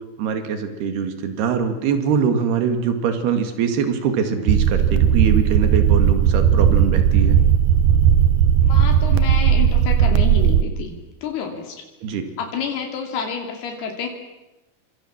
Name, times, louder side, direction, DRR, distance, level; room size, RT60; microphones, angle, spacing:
voice 1, 0.2-7.4 12.0-12.3, right 6 dB, 90° right, 7 dB, 4.1 m, -23 dB
sound 1, 4.5-10.6, right 9 dB, 70° right, 2.1 m, -16 dB
voice 2, 8.7-10.9 11.2-11.8 12.4-14.1, left 6 dB, 85° left, 2 dB, 4.7 m, -29 dB
28.5 x 25.5 x 7.3 m, 1.0 s
omnidirectional pair, 4.4 m